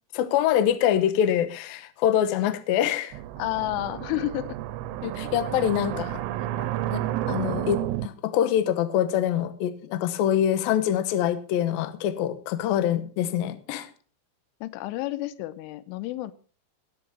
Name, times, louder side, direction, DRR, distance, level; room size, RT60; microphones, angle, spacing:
voice 1, 0.1-3.2 5.0-6.2 6.6-7.0 7.3-13.9, left 10 dB, 75° left, 11 dB, 2.3 m, -25 dB
sound 1, 3.1-8.1, right 13 dB, 80° right, 2.7 m, -31 dB
voice 2, 3.4-4.6 5.4-6.1 14.6-16.3, left 16 dB, 90° left, 16 dB, 3.2 m, -31 dB
18.0 x 7.1 x 6.0 m, 0.41 s
omnidirectional pair, 5.5 m